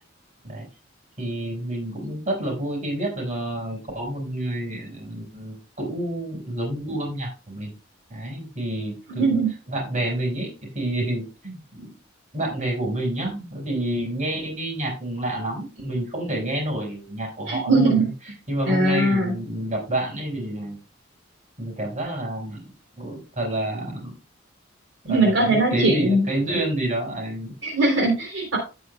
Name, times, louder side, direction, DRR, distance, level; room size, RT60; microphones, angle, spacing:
voice 1, 1.2-7.7 8.1-9.4 9.7-11.9 12.3-18.0 18.2-20.8 21.6-22.7 23.0-24.2 25.0-27.5, right 1 dB, 40° right, -1 dB, 5.0 m, -29 dB
voice 2, 9.1-9.5 17.5-18.0 18.6-19.3 25.1-26.2 27.6-28.6, right 2 dB, 70° right, -1 dB, 3.3 m, -20 dB
16.0 x 6.3 x 2.2 m, 0.31 s
head